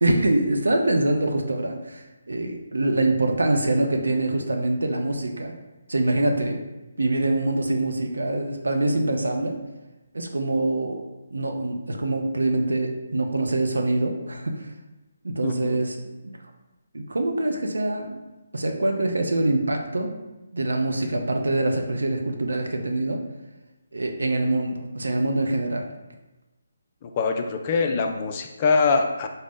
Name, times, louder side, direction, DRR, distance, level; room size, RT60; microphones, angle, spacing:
voice 1, 0.0-5.5 5.9-6.6 7.0-9.6 10.1-11.0 11.3-14.7 15.2-16.0 16.2-16.3 16.9-18.3 18.5-20.1 20.5-23.2 23.9-25.9, right 2 dB, 75° right, 3 dB, 0.5 m, -24 dB
voice 2, 15.4-15.8 27.0-29.3, left 4 dB, 30° left, 4 dB, 0.3 m, -23 dB
3.8 x 2.1 x 3.5 m, 1.1 s
figure-of-eight pair, 145°, 0 cm